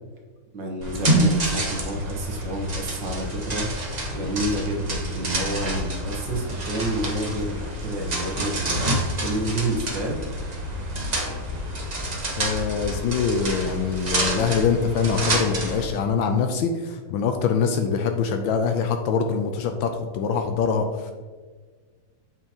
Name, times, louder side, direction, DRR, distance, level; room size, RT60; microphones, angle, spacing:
voice 1, 0.5-3.7 4.1-10.2, right 1 dB, 60° right, 0 dB, 1.7 m, -29 dB
sound 1, 0.8-15.8, right 1 dB, 35° right, 0.7 m, -28 dB
voice 2, 12.4-21.1, left 6 dB, 75° left, 5 dB, 1.2 m, -24 dB
7.1 x 5.8 x 2.9 m, 1.4 s
omnidirectional pair, 2.4 m